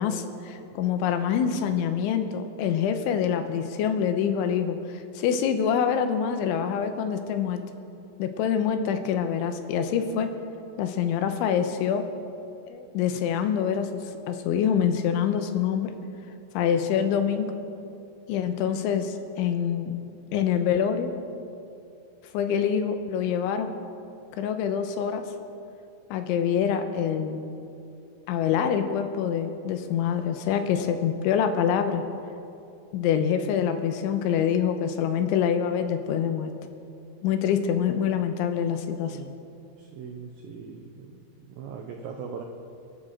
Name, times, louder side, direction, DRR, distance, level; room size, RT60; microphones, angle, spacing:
voice 1, 0.0-7.6 8.2-10.3 10.8-12.1 12.7-14.0 14.3-15.9 16.5-17.5 18.3-19.9 20.3-21.1 22.3-23.7 24.4-25.2 26.1-27.5 28.3-32.0 32.9-36.5 37.2-39.2, left 8 dB, 85° left, 7 dB, 3.3 m, -25 dB
voice 2, 39.0-39.3 39.8-41.1 41.5-42.4, right 6 dB, 85° right, 2 dB, 2.0 m, -40 dB
29.0 x 12.0 x 3.8 m, 2.6 s
omnidirectional pair, 5.4 m